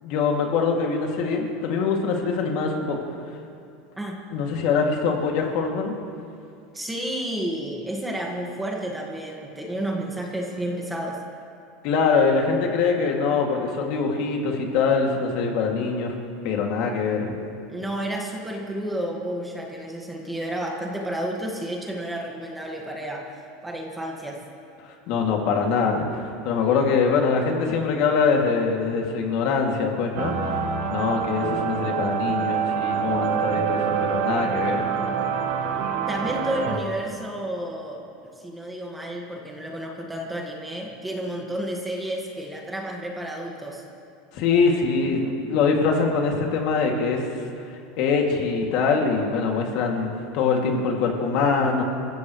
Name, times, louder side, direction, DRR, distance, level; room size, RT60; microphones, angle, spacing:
voice 1, 0.0-3.0 4.3-5.9 11.8-16.1 16.4-17.3 25.1-30.3 30.9-34.8 44.3-47.3 48.0-51.8, left 5 dB, 55° left, 1 dB, 2.5 m, -23 dB
voice 2, 6.7-11.2 17.7-23.3 23.6-24.4 36.1-38.0 38.4-43.9, right 1 dB, 5° right, -1 dB, 1.8 m, -31 dB
sound 1, 30.2-36.8, right 7 dB, 60° right, 1.5 m, -26 dB
28.0 x 15.0 x 3.2 m, 2.5 s
supercardioid pair, 150°, 0 cm